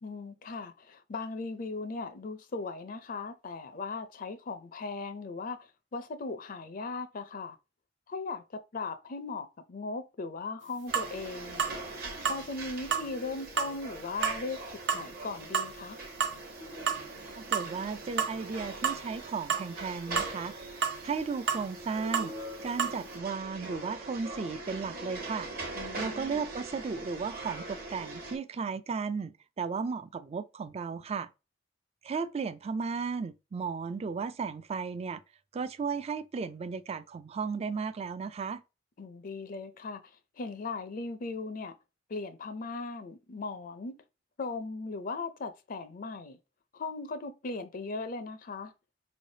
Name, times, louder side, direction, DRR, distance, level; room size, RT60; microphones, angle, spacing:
voice 1, 0.0-7.6 8.1-11.7 12.3-14.6 14.9-16.0 25.7-26.5 39.0-40.0 40.4-41.7 42.1-44.0 44.4-46.4 46.7-48.7, left 3 dB, 50° left, 0.5 m, -38 dB
sound 1, 10.9-28.4, right 2 dB, 55° right, 1.1 m, -42 dB
sound 2, 10.9-11.1 11.6-11.8 12.3-12.4 12.9-13.1 13.6-13.8 14.2-14.4 14.9-15.1 15.5-15.7 16.2-16.4 16.9-17.0 17.5-17.8 18.2-18.4 18.8-19.0 19.5-19.7 20.2-20.3 20.8-21.0 21.5-21.7 22.1-22.3 22.8-23.0, right 6 dB, 75° right, 0.7 m, -29 dB
voice 2, 17.4-20.5 21.0-22.3 22.6-25.5 26.0-31.3 32.0-35.2 35.5-38.6, right 5 dB, 35° right, 0.3 m, -35 dB
4.6 x 3.2 x 2.7 m
head